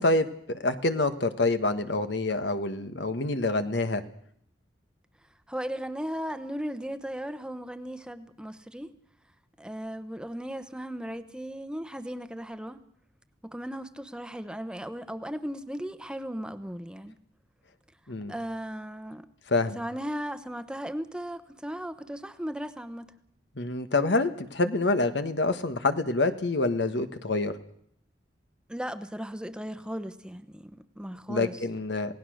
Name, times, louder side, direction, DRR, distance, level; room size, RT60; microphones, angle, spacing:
voice 1, 0.0-4.0 18.1-18.3 19.5-19.8 23.6-27.5 31.3-32.1, left 2 dB, 75° left, 9 dB, 1.5 m, -27 dB
voice 2, 5.5-8.9 9.6-12.8 13.4-17.2 18.3-19.3 19.7-23.1 28.7-31.6, equal, 5° right, 10 dB, 1.0 m, -36 dB
27.5 x 18.0 x 6.4 m, 0.67 s
head